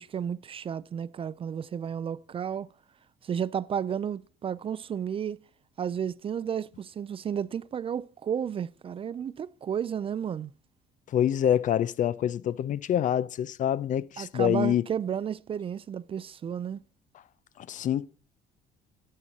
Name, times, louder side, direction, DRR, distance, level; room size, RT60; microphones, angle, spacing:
voice 1, 0.0-2.7 3.2-5.4 5.8-10.5 14.2-16.8, right 8 dB, 35° right, 0.4 m, -32 dB
voice 2, 11.1-14.8 17.6-18.1, left 10 dB, 50° left, 0.4 m, -26 dB
12.0 x 7.7 x 4.0 m
cardioid pair, 110°, 17 cm